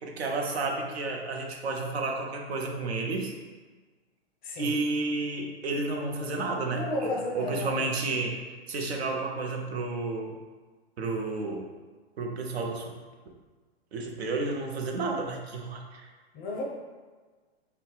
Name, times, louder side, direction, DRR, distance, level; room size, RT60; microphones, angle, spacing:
voice 1, 0.0-3.3 4.6-8.4 8.7-10.4 11.0-11.7 12.2-12.9 13.9-16.1, right 3 dB, 75° right, 1 dB, 0.6 m, -31 dB
voice 2, 6.6-8.0 16.3-16.6, left 2 dB, 25° left, -2 dB, 0.6 m, -33 dB
2.6 x 2.2 x 3.8 m, 1.4 s
hypercardioid pair, 110°, 32 cm